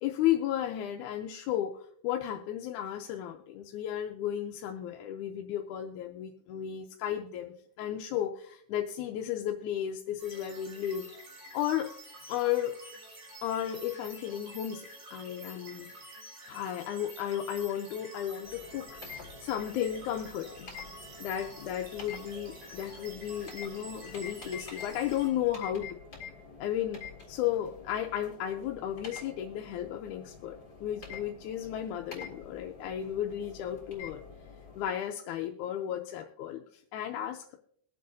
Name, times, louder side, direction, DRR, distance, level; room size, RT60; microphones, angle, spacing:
voice 1, 0.0-11.1 11.5-11.9 12.3-12.7 13.4-15.9 16.5-20.7 21.2-26.0 26.6-27.0 27.3-34.2 34.8-37.6, left 11 dB, 75° left, 2 dB, 2.0 m, -34 dB
sound 1, 10.2-25.3, right 1 dB, 65° right, 6.1 m, -49 dB
sound 2, 18.4-34.9, left 5 dB, 30° left, 3.7 m, -48 dB
23.0 x 7.9 x 2.6 m, 0.63 s
omnidirectional pair, 3.8 m